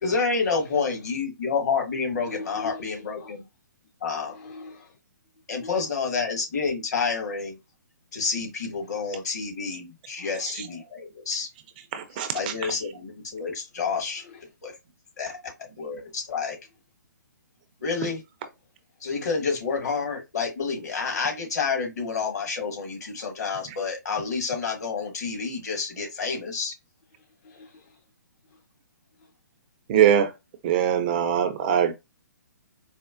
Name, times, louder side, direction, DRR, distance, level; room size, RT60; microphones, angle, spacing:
voice 1, 0.0-3.4 4.0-4.3 5.5-7.6 8.1-11.5 12.3-14.2 14.6-14.7 15.2-16.6 17.8-18.2 19.0-26.7, left 5 dB, 60° left, 1.3 m, -29 dB
voice 2, 2.3-3.3 4.3-4.9 5.6-5.7 9.0-9.2 10.2-10.5 12.1-12.3 14.2-14.4 27.4-28.0, left 2 dB, 40° left, 0.5 m, -42 dB
voice 3, 11.9-12.5 29.9-30.3 30.6-31.9, right 9 dB, 30° right, 0.4 m, -22 dB
4.3 x 2.1 x 2.5 m
figure-of-eight pair, 130°, 10 cm